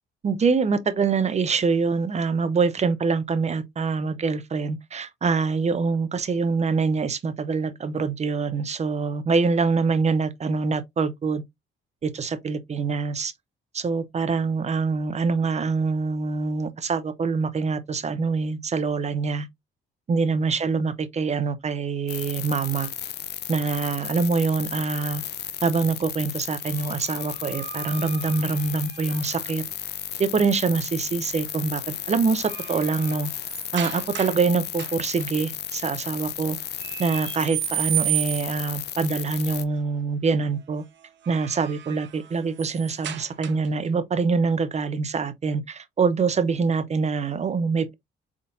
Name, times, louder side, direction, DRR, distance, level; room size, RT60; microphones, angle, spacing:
voice 1, 0.2-11.4 12.0-13.3 13.7-19.5 20.1-22.9 23.5-25.2 25.6-29.6 30.2-33.3 33.7-36.6 37.0-40.8 41.3-47.9, right 4 dB, 35° right, 0.7 m, -25 dB
sound 1, 22.1-39.6, left 11 dB, 55° left, 0.5 m, -34 dB
sound 2, 26.6-29.5 31.3-31.6 32.0-34.5 34.7-35.3 36.8-38.7 41.0-43.9, right 15 dB, 65° right, 0.7 m, -34 dB
4.1 x 3.6 x 2.5 m
cardioid pair, 90°, 20 cm